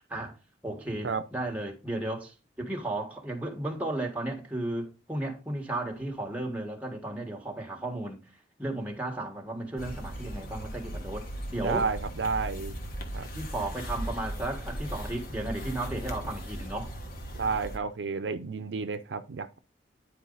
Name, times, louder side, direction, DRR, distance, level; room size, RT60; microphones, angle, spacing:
voice 1, 0.6-8.3 8.6-11.9 13.3-17.0, right 1 dB, 10° right, 1.7 m, -34 dB
sound 1, 9.8-17.8, equal, 50° left, 1.3 m, -38 dB
voice 2, 11.6-12.8 13.1-13.3 17.3-19.6, right 5 dB, 75° right, 0.5 m, -31 dB
9.8 x 4.6 x 4.0 m
head